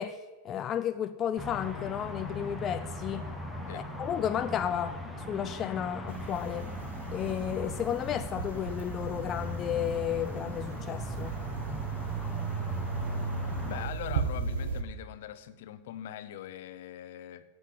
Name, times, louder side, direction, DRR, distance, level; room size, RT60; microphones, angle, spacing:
voice 1, 0.0-3.3 3.7-5.0 5.3-6.7 7.1-11.4, left 10 dB, 25° left, 0.4 m, -33 dB
sound 1, 1.4-13.8, left 1 dB, 5° right, 1.3 m, -39 dB
sound 2, 6.1-14.8, right 5 dB, 80° right, 1.0 m, -36 dB
voice 2, 13.7-17.4, left 12 dB, 65° left, 0.7 m, -42 dB
8.3 x 7.8 x 7.6 m
supercardioid pair, 145°, 0 cm